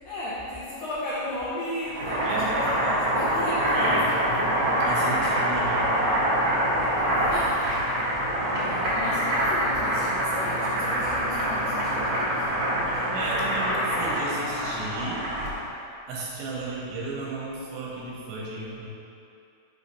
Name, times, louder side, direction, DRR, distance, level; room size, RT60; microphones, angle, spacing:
voice 1, 0.1-4.7 7.1-7.8 8.5-12.5 12.8-13.5 17.3-18.1, left 1 dB, 80° left, -9 dB, 2.0 m, -36 dB
Boiling, 1.8-15.6, right 1 dB, 60° right, 1.7 m, -25 dB
voice 2, 4.8-5.9 13.1-15.3 16.1-18.9, right 2 dB, 80° right, -5 dB, 3.2 m, -34 dB
7.2 x 3.2 x 5.4 m, 2.6 s
omnidirectional pair, 5.3 m